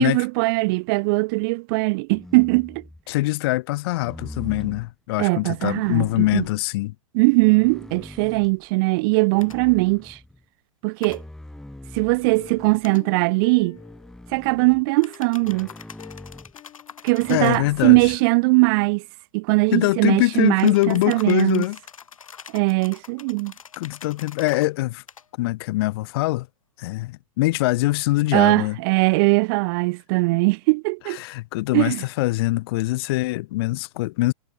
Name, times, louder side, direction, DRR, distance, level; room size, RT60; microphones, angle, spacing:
voice 1, 0.0-2.8 5.2-6.4 7.1-10.2 10.8-11.2 11.9-13.8 14.3-15.7 17.0-19.0 19.3-21.6 22.5-23.5 28.3-31.2 31.7-32.0, right 28 dB, 40° right, 0.9 m, -20 dB
sound 1, 2.1-3.1 4.0-4.9 5.8-6.6 7.3-8.7 9.3-10.5 11.1-12.9 13.7-14.9 15.4-16.5 17.2-18.2, left 1 dB, 5° left, 3.6 m, -42 dB
voice 2, 3.1-6.9 17.3-18.1 19.7-21.8 23.8-25.0 25.4-26.5 26.8-28.8 31.1-34.3, left 19 dB, 45° left, 0.6 m, -23 dB
sound 2, 9.4-9.6 11.0-11.2 12.8-13.0 15.0-17.7 20.6-24.7 25.1-25.3, left 7 dB, 70° left, 4.1 m, -44 dB
Plucked string instrument, 12.4-14.3 15.0-17.8 18.1-18.2 18.5-18.6, left 13 dB, 30° left, 4.3 m, -47 dB
figure-of-eight pair, 105°, 18 cm